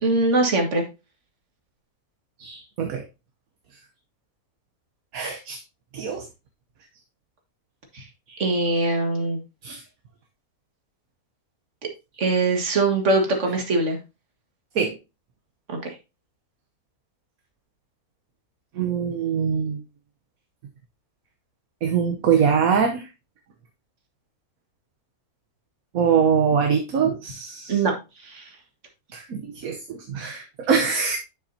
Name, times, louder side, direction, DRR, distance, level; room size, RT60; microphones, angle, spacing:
voice 1, 0.0-0.8 7.9-8.0 8.4-9.4 12.2-14.0 15.7-15.9 27.7-27.9 28.2-28.5, right 2 dB, 55° right, 3 dB, 2.1 m, -22 dB
voice 2, 2.4-3.0 5.1-5.6 5.9-6.2 8.3-8.4 9.6-9.8 14.7-14.9 18.8-19.8 21.8-23.0 25.9-27.8 29.1-31.2, right 6 dB, 70° right, 4 dB, 1.4 m, -23 dB
8.4 x 7.1 x 2.8 m, 0.26 s
omnidirectional pair, 1.6 m